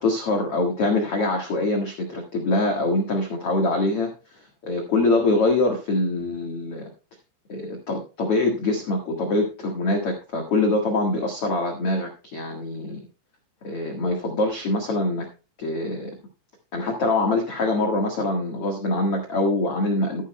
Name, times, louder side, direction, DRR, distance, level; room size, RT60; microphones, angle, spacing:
voice 1, 0.0-6.9 7.5-13.0 13.6-15.3 15.6-16.1 16.7-20.2, left 2 dB, 65° left, 2 dB, 1.4 m, -24 dB
13.5 x 11.0 x 2.2 m, 0.33 s
omnidirectional pair, 5.4 m